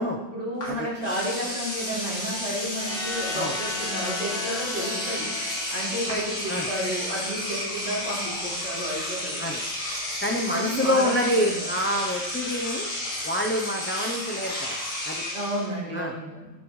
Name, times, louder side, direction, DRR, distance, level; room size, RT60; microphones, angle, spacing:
voice 1, 0.3-5.3 5.7-9.4 10.5-11.6 15.3-16.5, equal, 40° right, -7 dB, 3.8 m, -31 dB
Engine / Domestic sounds home sounds, 0.6-0.7 1.0-15.7, left 1 dB, 85° left, 3.0 m, -32 dB
sound 1, 2.7-7.6, left 3 dB, 50° left, 3.2 m, -36 dB
voice 2, 10.2-12.9 13.2-14.8 15.0-15.2 15.9-16.1, left 1 dB, 15° left, 1 dB, 0.4 m, -27 dB
13.5 x 7.2 x 3.2 m, 1.1 s
omnidirectional pair, 1.3 m